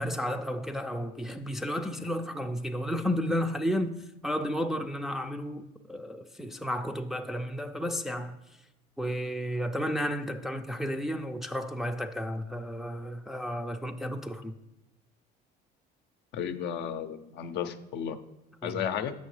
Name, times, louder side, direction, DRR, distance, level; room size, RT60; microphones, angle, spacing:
voice 1, 0.0-8.4 9.0-14.6 18.6-18.8, equal, ahead, 0.4 m, -32 dB
voice 2, 16.3-18.2 18.6-19.1, left 8 dB, 60° left, 0.6 m, -33 dB
8.3 x 6.3 x 3.2 m
supercardioid pair, 90°, 20 cm